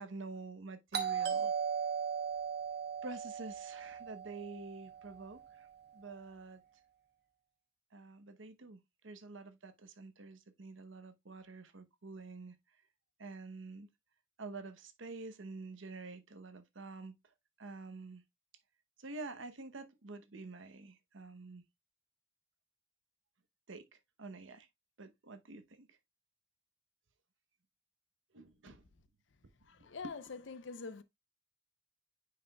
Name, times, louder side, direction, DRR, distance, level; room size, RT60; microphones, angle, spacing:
voice 1, 0.0-1.5 3.0-5.7 5.9-6.6 7.9-12.5 13.2-13.9 14.4-17.1 17.6-18.2 19.0-21.6 23.7-23.8 24.2-24.7 25.0-26.0 28.3-28.8 30.0-30.1, right 3 dB, 85° right, 0.9 m, -48 dB
Doorbell, 0.9-5.5, right 7 dB, 55° right, 0.9 m, -37 dB
voice 2, 29.6-31.0, left 4 dB, 75° left, 0.6 m, -45 dB
9.2 x 4.9 x 2.3 m
head